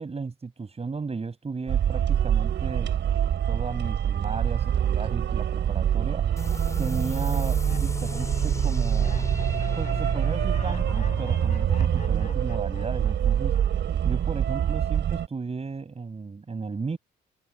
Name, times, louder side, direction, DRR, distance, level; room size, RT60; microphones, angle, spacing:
voice 1, 0.0-2.9 3.5-6.3 6.8-9.3 9.8-13.6 14.0-17.0, right 4 dB, 30° right, 6.4 m, -34 dB
sound 1, 1.7-15.3, right 9 dB, 65° right, 4.3 m, -25 dB
sound 2, 6.4-13.6, left 2 dB, 15° left, 5.4 m, -35 dB
Laughter, 7.5-13.9 14.2-14.7, left 5 dB, 35° left, 7.1 m, -47 dB
cardioid pair, 90°, 20 cm